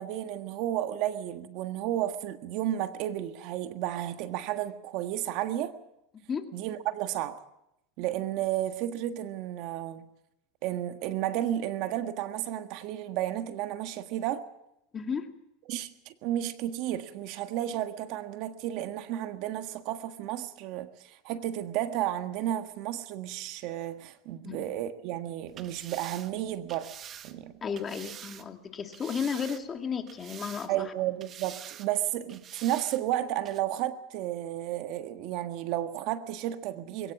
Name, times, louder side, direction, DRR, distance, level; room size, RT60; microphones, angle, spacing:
voice 1, 0.0-5.7 6.5-7.4 8.0-10.1 10.6-14.4 15.7-26.9 27.2-27.6 30.7-37.1, right 12 dB, 60° right, 1.5 m, -32 dB
voice 2, 6.1-6.5 14.9-15.3 24.4-24.7 27.6-30.9, left 6 dB, 25° left, 2.2 m, -34 dB
sound 1, 25.5-28.5 28.9-29.8 30.1-30.9 31.2-31.9 32.3-33.0 33.4-33.6, right 9 dB, 35° right, 1.2 m, -46 dB
22.0 x 17.5 x 7.4 m
supercardioid pair, 120°, 0 cm